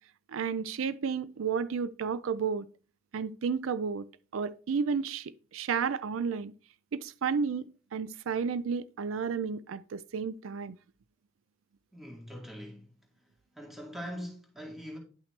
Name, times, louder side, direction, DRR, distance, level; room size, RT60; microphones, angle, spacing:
voice 1, 0.3-2.7 3.1-4.1 4.3-6.5 6.9-10.8, right 6 dB, 85° right, 0.4 m, -32 dB
voice 2, 11.9-12.9 13.6-15.0, equal, ahead, 2.0 m, -42 dB
10.5 x 5.8 x 3.2 m
head